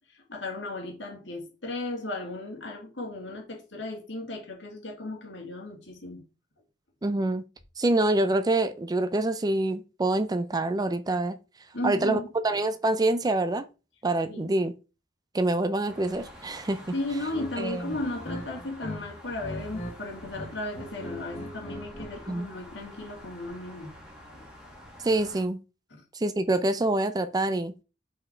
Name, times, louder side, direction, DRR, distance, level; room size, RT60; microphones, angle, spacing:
voice 1, 0.1-6.2 11.7-12.3 14.3-14.5 16.9-23.9 24.3-24.5 25.9-26.0, left 2 dB, 70° left, 2.0 m, -35 dB
voice 2, 7.0-7.4 7.8-11.4 11.8-13.6 14.0-14.7 15.3-16.8 17.6-17.8 22.3-22.5 25.0-25.6 26.1-27.7, right 2 dB, 20° right, 0.4 m, -26 dB
sound 1, 15.9-25.4, equal, 5° right, 2.0 m, -47 dB
sound 2, 17.3-17.5 17.9-19.0 19.3-19.9 20.2-22.1, equal, 35° left, 1.1 m, -39 dB
5.5 x 4.4 x 4.4 m
head